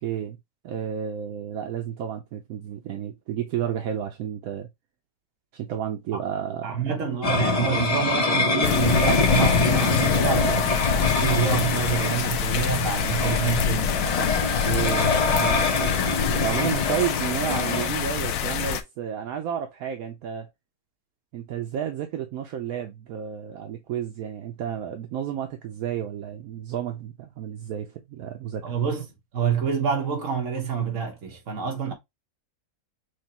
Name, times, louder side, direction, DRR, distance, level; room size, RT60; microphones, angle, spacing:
voice 1, 0.0-0.4 0.6-4.7 5.5-6.9 14.6-15.7 16.3-20.5 21.3-28.6, right 9 dB, 75° right, 1.1 m, -31 dB
voice 2, 6.6-14.1 28.6-29.1 29.3-31.9, right 6 dB, 60° right, 1.5 m, -27 dB
sound 1, 7.2-17.9, left 3 dB, 35° left, 0.6 m, -25 dB
sound 2, 8.6-18.8, left 8 dB, 70° left, 0.9 m, -26 dB
6.3 x 2.2 x 2.9 m
omnidirectional pair, 1.6 m